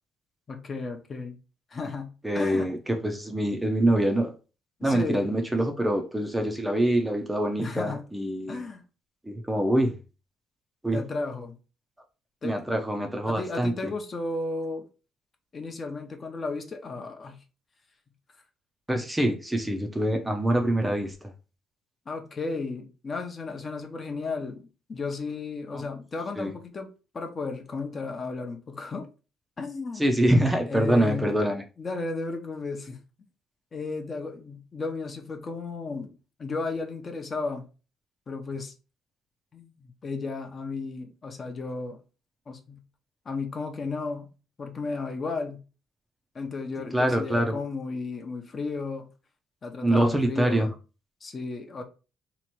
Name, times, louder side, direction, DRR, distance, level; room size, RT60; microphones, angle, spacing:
voice 1, 0.5-1.4 1.7-2.7 4.8-5.3 7.6-8.0 8.5-8.8 10.9-11.6 12.4-12.6 13.3-14.8 15.5-17.4 22.1-26.9 27.1-29.1 29.6-30.1 30.7-31.3 31.8-33.0 33.7-37.6 38.3-38.7 39.5-42.0 42.5-42.8 43.3-44.3 44.6-45.6 46.3-49.1 49.6-50.7 51.2-51.8, left 3 dB, 35° left, 0.7 m, -34 dB
voice 2, 2.2-4.3 4.8-8.6 9.3-10.0 10.8-11.0 12.4-13.9 18.9-21.1 25.7-25.8 26.4-26.5 30.0-31.6 46.9-47.5 49.8-50.7, right 1 dB, 5° right, 0.6 m, -25 dB
3.0 x 2.5 x 4.3 m
cardioid pair, 120°, 0 cm